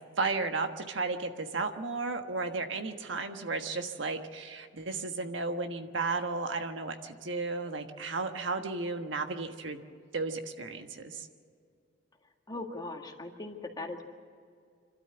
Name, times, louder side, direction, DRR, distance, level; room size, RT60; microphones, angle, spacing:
voice 1, 0.2-9.8 10.1-11.3, right 3 dB, 75° right, 6 dB, 1.4 m, -34 dB
voice 2, 12.5-14.1, left 2 dB, 20° left, 2 dB, 1.9 m, -39 dB
27.0 x 13.0 x 7.9 m, 2.2 s
head